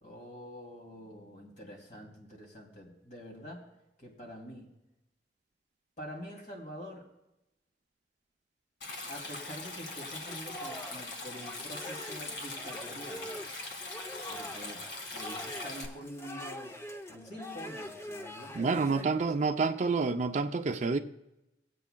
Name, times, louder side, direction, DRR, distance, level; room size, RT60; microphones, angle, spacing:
voice 1, 0.0-3.7 4.0-4.7 6.0-7.1 9.1-13.4 14.3-14.8 15.1-16.8 17.1-19.3, equal, 45° left, 0 dB, 2.6 m, -46 dB
Stream, 8.8-15.9, left 2 dB, 65° left, 1.8 m, -41 dB
sound 1, 10.3-19.0, equal, 15° left, 0.6 m, -44 dB
voice 2, 18.5-21.0, right 4 dB, 40° right, 8 dB, 0.4 m, -28 dB
19.0 x 8.3 x 2.2 m, 0.91 s
head